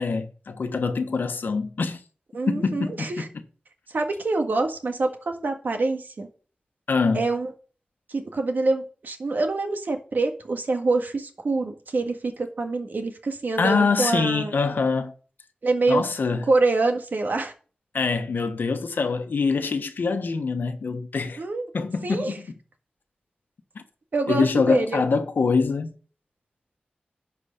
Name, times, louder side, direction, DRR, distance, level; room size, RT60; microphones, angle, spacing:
voice 1, 0.0-2.0 2.5-3.2 6.9-7.2 13.6-15.1 15.9-16.4 17.9-21.4 21.7-22.5 23.7-23.8 24.3-25.9, left 4 dB, 85° left, 1.1 m, -24 dB
voice 2, 2.3-3.3 3.9-6.3 7.1-7.5 8.1-14.5 15.6-16.1 16.5-17.5 21.4-21.7 22.0-22.4 24.1-25.0, right 3 dB, 70° right, 1.6 m, -25 dB
11.0 x 4.9 x 6.6 m
wide cardioid pair, 70°, 3 cm